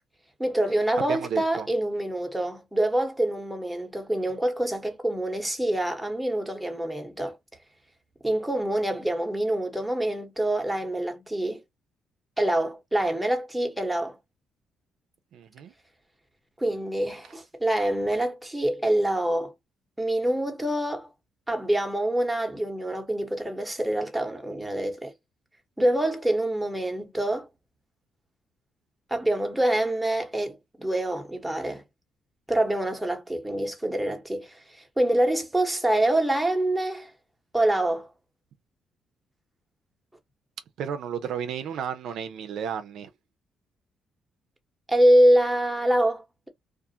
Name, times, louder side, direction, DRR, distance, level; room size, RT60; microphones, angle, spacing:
voice 1, 0.4-7.4 8.2-11.6 12.4-14.2 16.6-19.5 20.0-21.1 21.5-25.1 25.8-27.5 29.1-31.8 32.5-34.6 35.0-37.1 37.5-38.1 44.9-46.5, right 1 dB, 5° right, 0.9 m, -25 dB
voice 2, 1.1-1.7 15.3-15.7 40.8-43.1, right 7 dB, 75° right, 0.4 m, -33 dB
2.4 x 2.4 x 2.7 m
cardioid pair, 90°, 0 cm